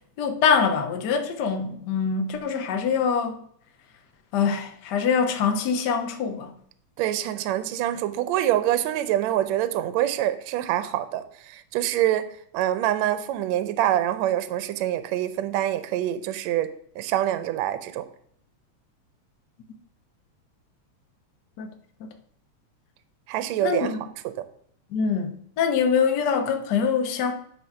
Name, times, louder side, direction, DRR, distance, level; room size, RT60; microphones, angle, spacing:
voice 1, 0.2-3.4 4.3-6.5 21.6-21.7 23.6-24.0 24.9-27.3, left 6 dB, 90° left, 0.9 m, -24 dB
voice 2, 7.0-16.7 16.9-18.0 23.3-23.9, right 12 dB, 80° right, 1.9 m, -25 dB
9.4 x 4.1 x 5.7 m
omnidirectional pair, 3.3 m